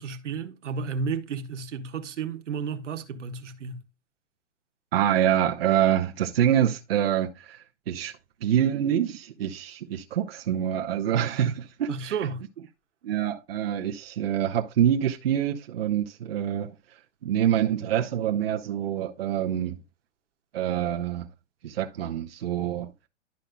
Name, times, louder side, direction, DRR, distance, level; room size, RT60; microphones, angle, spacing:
voice 1, 0.0-3.8 11.9-12.4, right 5 dB, 90° right, 1.3 m, -32 dB
voice 2, 4.9-8.1 8.4-12.2 13.0-16.7 17.2-19.8 20.5-21.3 21.6-22.9, right 10 dB, 55° right, 0.9 m, -26 dB
11.5 x 5.3 x 2.2 m
hypercardioid pair, 175°, 35 cm